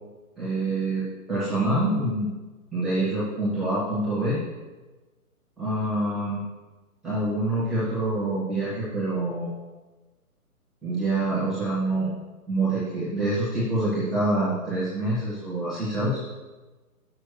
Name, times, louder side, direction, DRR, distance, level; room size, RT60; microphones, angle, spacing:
voice 1, 0.4-1.0 1.3-2.3 2.7-4.4 5.6-6.4 7.0-9.5 10.8-12.1 12.5-16.2, right 2 dB, ahead, -14 dB, 0.5 m, -26 dB
6.7 x 4.4 x 6.1 m, 1.2 s
hypercardioid pair, 155°, 45 cm